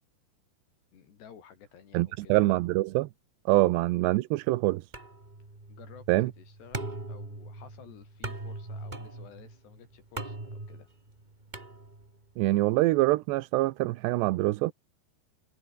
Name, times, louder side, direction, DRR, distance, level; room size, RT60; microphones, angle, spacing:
voice 1, 0.9-2.4 3.5-3.7 5.7-10.9, left 7 dB, 80° left, 6.0 m, -53 dB
voice 2, 1.9-3.1 3.5-4.9 6.1-6.3 12.4-14.7, right 19 dB, 90° right, 3.0 m, -25 dB
sound 1, 4.9-12.3, right 2 dB, 15° right, 2.3 m, -41 dB
omnidirectional pair, 4.8 m